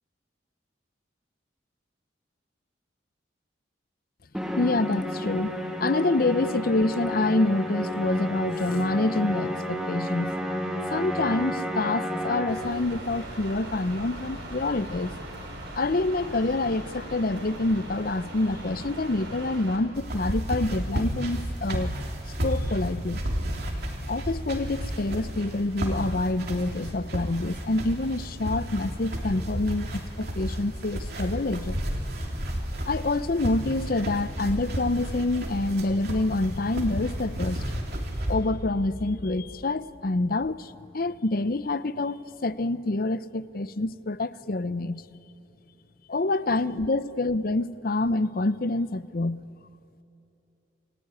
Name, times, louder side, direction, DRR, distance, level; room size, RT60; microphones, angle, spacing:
Musical instrument, 4.3-12.9, equal, 5° right, 2.2 m, -31 dB
voice 1, 4.6-10.3 10.9-15.1 15.8-21.9 22.4-23.2 24.1-31.8 32.9-37.8 38.3-45.0 46.1-49.4, left 2 dB, 50° left, 0.7 m, -27 dB
sound 1, 12.5-19.8, right 1 dB, 90° right, 6.4 m, -39 dB
sound 2, 20.0-38.4, equal, 55° right, 3.5 m, -32 dB
29.5 x 19.5 x 9.7 m
head